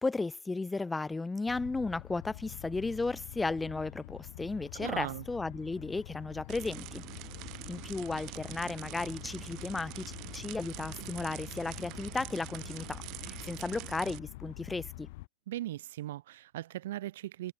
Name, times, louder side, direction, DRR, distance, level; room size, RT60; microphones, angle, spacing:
voice 1, 0.0-7.0 7.7-10.1 10.3-15.1, left 3 dB, 10° left, 0.3 m, -35 dB
sound 1, 1.5-15.3, left 21 dB, 50° left, 1.6 m, -47 dB
voice 2, 4.7-5.3 15.5-17.5, right 14 dB, 55° right, 0.4 m, -38 dB
sound 2, 6.5-14.2, right 22 dB, 40° right, 1.4 m, -45 dB
figure-of-eight pair, 90°, 0 cm